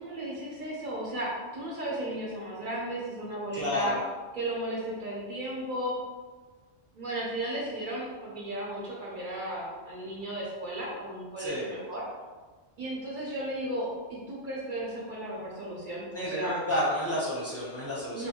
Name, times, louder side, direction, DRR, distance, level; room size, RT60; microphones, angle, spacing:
voice 1, 0.0-4.0 4.3-5.9 6.9-12.0 12.8-16.6 18.1-18.3, right 1 dB, 50° right, -5 dB, 0.7 m, -35 dB
voice 2, 3.5-4.0 11.4-11.7 16.1-18.3, equal, 15° left, -8 dB, 0.5 m, -30 dB
2.6 x 2.2 x 2.8 m, 1.4 s
omnidirectional pair, 1.3 m